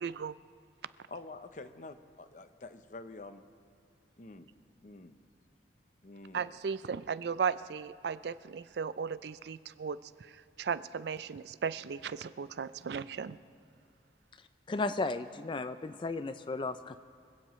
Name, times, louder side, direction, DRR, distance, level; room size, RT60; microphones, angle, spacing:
voice 1, 0.0-0.3 6.3-10.0 10.6-13.4, right 6 dB, 60° right, 15 dB, 0.4 m, -36 dB
voice 2, 1.1-3.4 4.2-4.5 4.8-5.2 6.0-6.5, left 2 dB, 45° left, 10 dB, 0.7 m, -47 dB
voice 3, 14.7-17.0, left 3 dB, 25° left, 11 dB, 0.3 m, -34 dB
25.0 x 16.5 x 3.1 m, 2.5 s
head